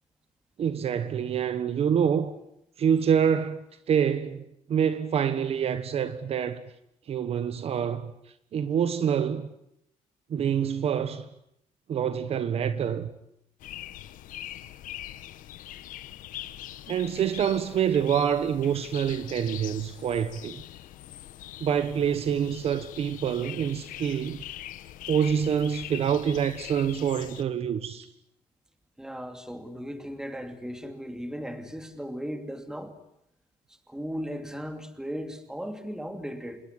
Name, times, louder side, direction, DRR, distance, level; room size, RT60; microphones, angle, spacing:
voice 1, 0.6-2.3 2.8-6.6 7.1-8.1 8.5-9.5 10.3-11.2 11.9-13.1 16.9-20.6 21.6-24.4 25.1-28.1, right 8 dB, 50° right, 1.4 m, -26 dB
sound 1, 13.6-27.4, left 13 dB, 85° left, 1.3 m, -42 dB
voice 2, 29.0-32.9 33.9-36.6, equal, 5° right, 2.6 m, -36 dB
27.5 x 21.0 x 9.7 m
cardioid pair, 155°, 13 cm